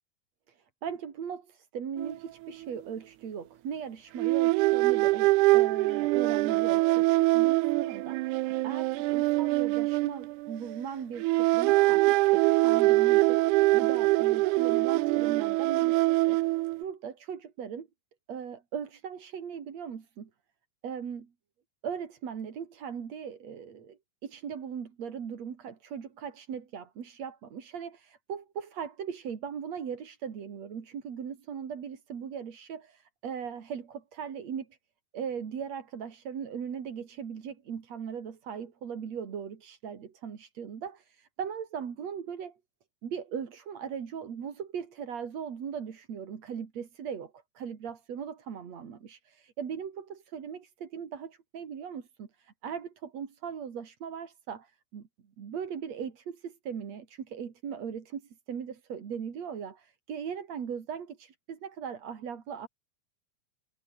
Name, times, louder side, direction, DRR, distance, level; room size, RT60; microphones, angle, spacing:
voice 1, 0.5-17.9 18.3-20.3 20.8-21.3 21.8-34.8 35.1-42.6 43.0-55.1 55.4-62.7, right 7 dB, 55° right, 3.6 m, -39 dB
sound 1, 2.0-2.1 2.5-2.6 4.2-10.8 11.2-16.8, right 20 dB, 80° right, 2.0 m, -24 dB
omnidirectional pair, 3.7 m